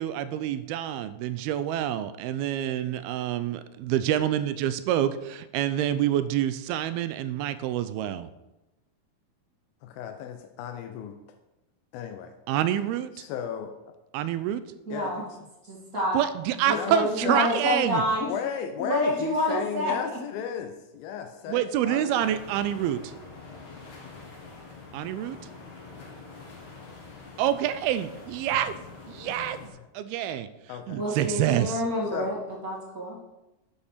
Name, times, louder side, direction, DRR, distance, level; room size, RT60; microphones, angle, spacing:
voice 1, 0.0-8.3 12.5-13.3 14.1-14.6 16.1-18.0 21.5-23.1 24.9-25.4 27.4-31.8, right 11 dB, 80° right, 13 dB, 2.4 m, -27 dB
voice 2, 9.8-11.2 11.9-12.4 13.1-13.9 14.9-15.5 16.7-17.6 18.3-22.3 28.5-28.6 29.2-29.5 30.7-31.0 32.1-32.4, left 8 dB, 80° left, 5 dB, 2.4 m, -35 dB
voice 3, 14.9-15.2 15.7-16.2 16.6-18.3 18.8-19.9 31.0-32.4 32.6-33.2, left 1 dB, 30° right, -4 dB, 2.1 m, -28 dB
sound 1, 22.2-29.7, left 4 dB, 55° left, 3.1 m, -45 dB
9.9 x 5.5 x 6.6 m, 0.96 s
omnidirectional pair, 4.6 m